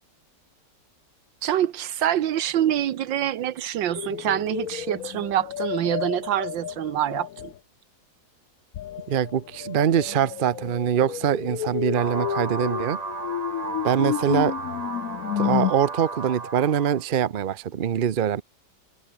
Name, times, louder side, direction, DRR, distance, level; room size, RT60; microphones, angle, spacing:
voice 1, 1.4-7.5, right 11 dB, 85° right, 1.7 m, -26 dB
sound 1, 3.9-7.6 8.7-15.7, left 11 dB, 60° left, 1.0 m, -31 dB
voice 2, 9.1-13.0 13.8-14.6 15.4-18.4, right 9 dB, 60° right, 0.5 m, -23 dB
sound 2, 11.9-17.0, right 3 dB, 25° right, 1.4 m, -33 dB
omnidirectional pair, 2.0 m